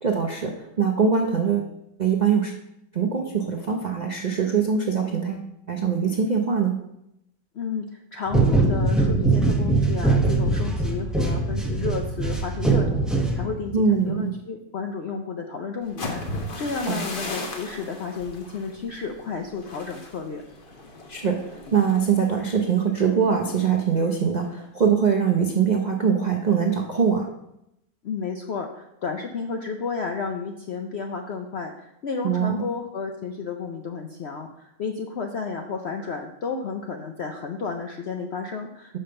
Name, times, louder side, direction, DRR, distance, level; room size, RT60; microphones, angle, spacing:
voice 1, 0.0-1.7 2.0-2.5 2.9-6.8 13.7-14.3 16.9-17.0 21.1-27.3 32.2-32.7, right 6 dB, 65° right, 2 dB, 0.4 m, -23 dB
voice 2, 7.5-20.4 28.0-39.0, left 5 dB, 70° left, 3 dB, 0.6 m, -32 dB
sound 1, 8.3-13.8, right 3 dB, ahead, 0.4 m, -22 dB
sound 2, 15.8-23.7 24.0-24.4 24.7-25.1, left 2 dB, 40° left, 1.0 m, -37 dB
5.6 x 5.2 x 6.7 m, 0.82 s
omnidirectional pair, 1.8 m